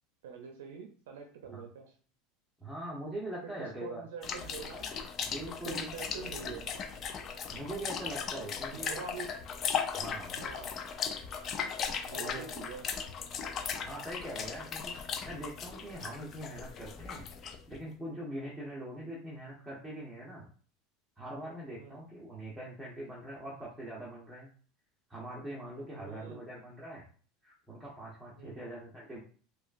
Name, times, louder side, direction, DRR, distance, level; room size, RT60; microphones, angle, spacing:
voice 1, 0.2-1.9 3.6-4.9 5.5-6.9 8.3-9.6 10.4-11.0 12.1-12.9 21.8-22.0 25.9-26.5 28.4-28.6, right 6 dB, 85° right, 4 dB, 0.5 m, -45 dB
voice 2, 2.6-4.0 5.3-5.9 6.2-6.5 7.5-9.0 10.0-10.4 12.1-12.5 13.8-14.9 15.2-17.3 17.7-20.5 21.2-24.5 25.1-27.1 27.4-29.2, right 1 dB, 5° right, -6 dB, 1.1 m, -42 dB
sound 1, 4.2-17.8, left 6 dB, 40° left, 0.5 m, -37 dB
4.8 x 2.4 x 2.5 m, 0.43 s
supercardioid pair, 105°, 0 cm